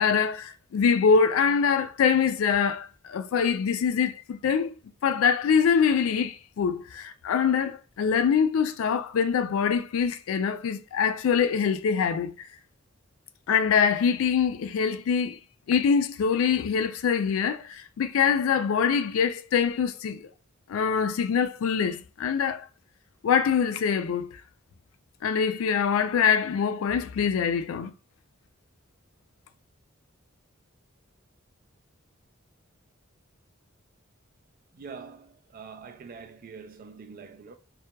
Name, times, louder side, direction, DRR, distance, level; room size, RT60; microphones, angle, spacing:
voice 1, 0.0-4.8 5.0-12.3 13.5-15.4 15.7-20.3 20.7-22.7 23.2-24.3 25.2-27.9, left 6 dB, 80° left, 0.3 m, -24 dB
voice 2, 34.7-37.5, right 5 dB, 45° right, 0.3 m, -44 dB
2.8 x 2.2 x 2.2 m
head